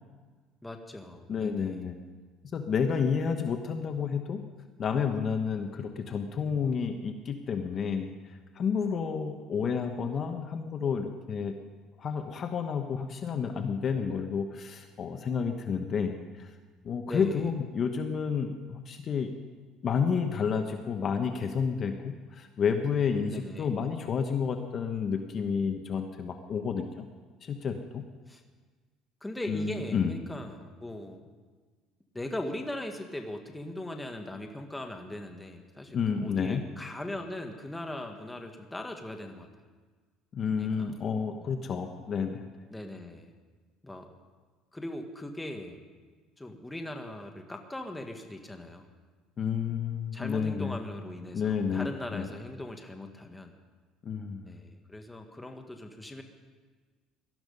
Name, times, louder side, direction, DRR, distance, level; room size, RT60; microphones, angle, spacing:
voice 1, 0.6-1.8 17.1-17.5 23.3-23.7 28.3-28.4 29.2-31.3 32.1-39.5 40.6-41.0 41.3-41.5 42.7-43.3 43.8-44.1 44.7-45.8 46.4-48.9 50.1-53.6 54.5-56.2, left 1 dB, 10° left, 4 dB, 1.6 m, -40 dB
voice 2, 1.3-2.0 2.5-4.4 4.8-8.1 8.5-11.5 12.0-16.5 16.8-19.4 19.8-27.1 27.4-28.0 29.5-30.1 35.9-36.6 40.3-42.5 49.4-50.8 51.3-52.3 54.0-54.5, left 6 dB, 40° left, 6 dB, 1.0 m, -30 dB
18.5 x 12.5 x 5.4 m, 1.4 s
cardioid pair, 130°, 0 cm